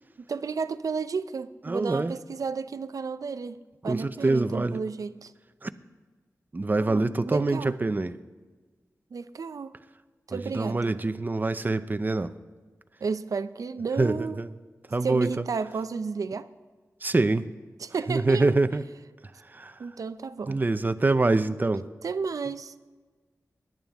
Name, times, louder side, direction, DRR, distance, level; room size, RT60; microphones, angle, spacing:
voice 1, 0.2-5.3 6.8-7.7 9.1-9.8 10.3-11.0 13.0-14.4 15.0-16.5 17.8-18.5 19.8-20.6 22.0-22.8, right 5 dB, 75° right, 0.5 m, -32 dB
voice 2, 1.7-2.1 3.9-4.8 5.6-5.7 6.5-8.1 10.3-12.3 14.0-14.5 14.9-15.3 17.0-17.5 18.1-18.8 19.5-19.7 20.5-21.8, right 2 dB, 30° right, 0.6 m, -25 dB
21.0 x 10.5 x 3.5 m
wide cardioid pair, 80°, 6 cm